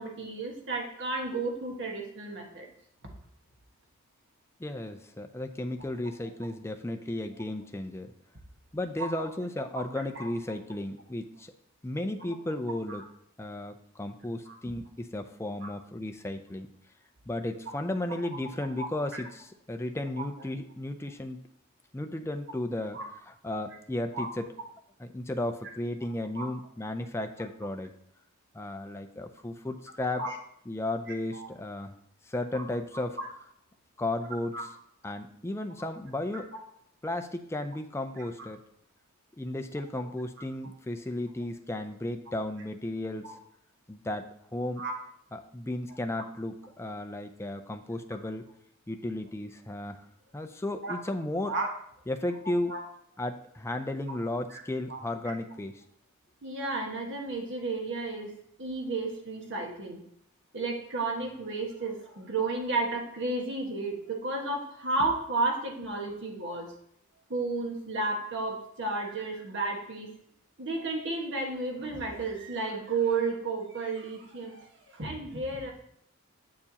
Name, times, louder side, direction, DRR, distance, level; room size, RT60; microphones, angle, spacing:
voice 1, 0.0-2.7 9.0-9.1 10.1-10.3 12.9-13.0 14.5-14.6 15.6-15.7 18.8-18.9 19.1-19.2 20.2-20.3 22.9-23.1 24.1-24.3 26.3-26.5 30.2-30.3 31.1-31.5 32.5-32.6 34.5-34.6 38.2-38.3 43.2-43.3 44.8-44.9 50.8-50.9 51.5-51.7 52.7-52.8 54.5-54.6 54.9-55.0 56.4-60.0 60.5-66.7 67.3-70.1 70.6-75.7, right 3 dB, 60° right, 1 dB, 1.5 m, -32 dB
voice 2, 4.6-8.1 8.7-11.5 11.8-13.0 13.4-16.7 17.3-21.4 21.9-23.0 23.4-24.5 25.0-27.9 28.5-30.3 30.7-31.9 32.3-33.2 34.0-34.6 35.0-36.5 37.0-38.6 39.4-43.4 43.9-44.8 45.3-48.4 48.9-50.0 50.3-51.5 52.1-52.7 53.2-55.8, left 1 dB, 10° left, 6 dB, 0.5 m, -34 dB
8.4 x 6.8 x 2.9 m, 0.72 s
head